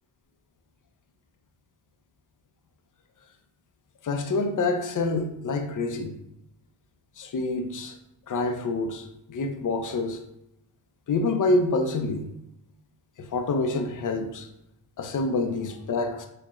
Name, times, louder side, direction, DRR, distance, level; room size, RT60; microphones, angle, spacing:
voice 1, 4.0-6.1 7.2-8.0 8.3-10.2 11.1-12.2 13.2-14.5 15.0-16.3, left 3 dB, 45° left, 0.6 m, -27 dB
4.4 x 2.3 x 3.0 m
cardioid pair, 75°, 43 cm